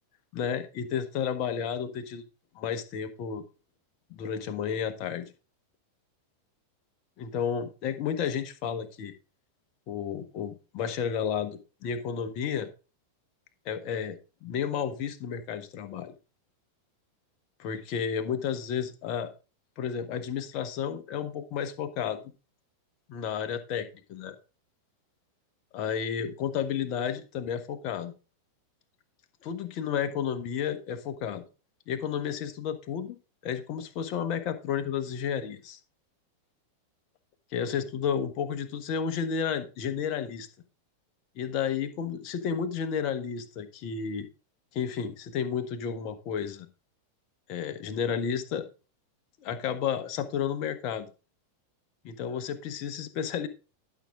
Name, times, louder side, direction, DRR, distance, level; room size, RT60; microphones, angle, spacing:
voice 1, 0.3-2.2 2.5-3.4 4.1-5.3 7.2-9.1 9.9-12.7 13.6-16.1 17.6-19.3 19.8-22.2 23.1-24.4 25.7-28.1 29.4-31.4 31.9-33.2 33.4-35.8 37.5-40.5 41.3-44.3 44.7-46.7 47.5-48.7 49.4-51.1 52.0-53.5, left 7 dB, 40° left, 9 dB, 1.2 m, -32 dB
11.5 x 6.0 x 3.7 m, 0.34 s
figure-of-eight pair, 90°, 0 cm